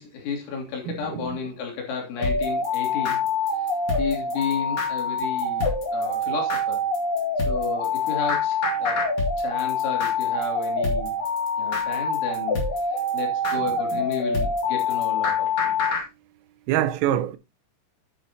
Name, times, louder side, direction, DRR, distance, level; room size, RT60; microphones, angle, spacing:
voice 1, 0.0-3.2 3.6-3.7 4.0-6.9 7.5-11.1 11.6-12.6 12.9-15.8, left 6 dB, 70° left, 5.1 m, -33 dB
voice 2, 0.8-1.4 13.6-14.0 16.7-17.4, right 12 dB, 85° right, 3.3 m, -26 dB
sound 1, 2.2-16.0, left 3 dB, 50° left, 1.8 m, -25 dB
9.9 x 9.3 x 2.8 m
omnidirectional pair, 5.9 m